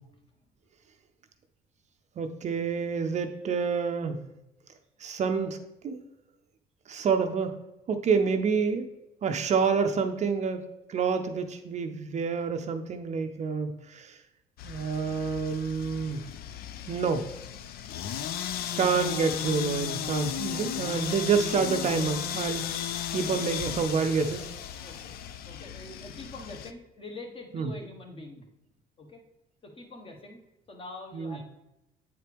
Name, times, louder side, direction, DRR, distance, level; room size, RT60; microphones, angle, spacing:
voice 1, 2.2-4.2 5.0-5.6 5.8-6.0 6.9-7.6 7.9-8.9 9.2-10.6 10.9-14.2 14.6-16.2 16.9-17.2 18.8-22.7 23.1-24.5 27.5-27.7 31.1-31.4, right 5 dB, 45° right, 7 dB, 0.6 m, -28 dB
sound 1, 14.6-26.7, left 10 dB, 65° left, 0.5 m, -35 dB
voice 2, 23.1-23.7 24.8-25.1 25.5-28.5 29.0-29.2 29.6-30.4 30.7-31.4, left 2 dB, 30° left, 2 dB, 1.3 m, -44 dB
8.4 x 4.5 x 3.4 m, 0.91 s
cardioid pair, 110°, 17 cm